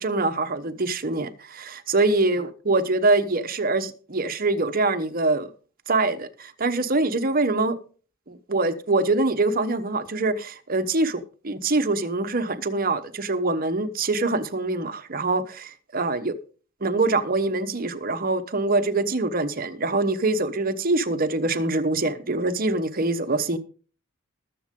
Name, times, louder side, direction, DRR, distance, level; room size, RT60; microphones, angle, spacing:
voice 1, 0.0-5.5 5.9-7.7 8.3-16.3 16.8-23.6, right 2 dB, 40° right, 1.0 m, -24 dB
20.5 x 7.5 x 3.7 m
head